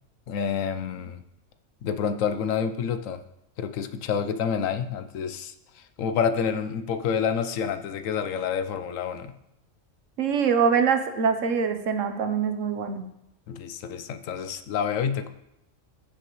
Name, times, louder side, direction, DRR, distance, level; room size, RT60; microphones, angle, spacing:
voice 1, 0.3-1.2 1.8-3.2 3.6-9.3 13.5-15.3, left 7 dB, 85° left, 9 dB, 1.1 m, -28 dB
voice 2, 10.2-13.0, right 6 dB, 75° right, 7 dB, 1.3 m, -24 dB
15.5 x 6.9 x 3.1 m, 0.83 s
omnidirectional pair, 1.3 m